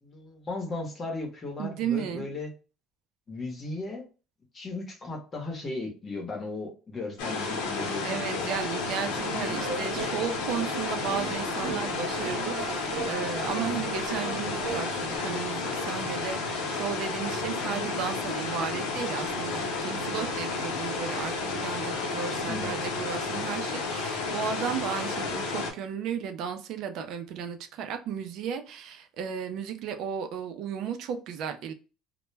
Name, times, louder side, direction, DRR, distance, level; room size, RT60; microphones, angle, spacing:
voice 1, 0.0-2.5 3.3-4.0 4.5-8.5 13.6-13.9 22.5-22.8, left 2 dB, 30° left, 0.8 m, -36 dB
voice 2, 1.6-2.2 8.0-31.7, right 8 dB, 65° right, 0.4 m, -34 dB
sound 1, 7.2-25.7, left 3 dB, 90° left, 0.7 m, -32 dB
sound 2, 9.2-15.2, right 4 dB, 80° right, 0.8 m, -38 dB
2.1 x 2.1 x 3.2 m
cardioid pair, 120°, 0 cm